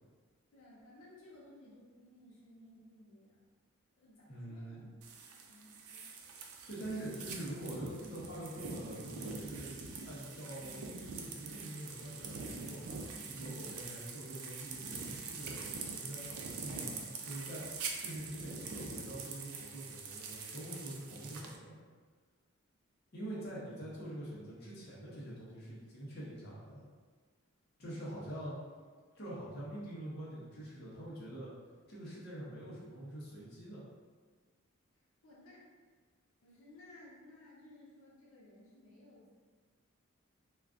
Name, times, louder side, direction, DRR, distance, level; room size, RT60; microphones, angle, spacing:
voice 1, 0.5-3.4 4.0-6.1 34.9-35.9 36.4-39.3, left 1 dB, 90° left, -6 dB, 0.8 m, -58 dB
voice 2, 4.3-4.8 6.7-9.7 10.0-13.0 13.3-17.6 18.0-21.7 23.1-26.8 27.8-28.5 29.1-31.5 31.9-33.8, right 1 dB, 50° left, -8 dB, 0.8 m, -45 dB
sound 1, 5.0-21.6, right 4 dB, 90° right, 0.4 m, -44 dB
2.4 x 2.3 x 3.5 m, 1.5 s
head